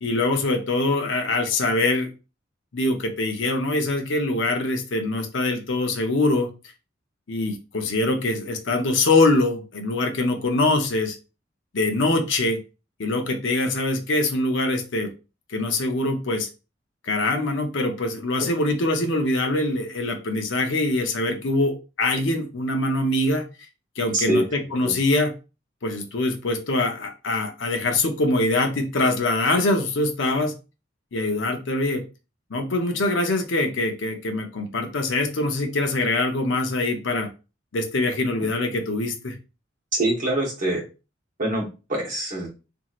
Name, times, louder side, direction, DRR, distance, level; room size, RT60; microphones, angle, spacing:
voice 1, 0.0-2.1 2.7-6.5 7.3-11.2 11.7-12.6 13.0-15.1 15.5-16.5 17.0-23.4 24.0-25.3 25.8-30.5 31.1-32.0 32.5-37.3 37.7-39.3, left 2 dB, 70° left, 4 dB, 0.6 m, -23 dB
voice 2, 24.1-24.5 24.8-24.9 38.4-38.5 39.9-40.8 41.4-42.5, right 1 dB, 40° right, -3 dB, 1.2 m, -24 dB
3.0 x 2.6 x 2.4 m, 0.30 s
head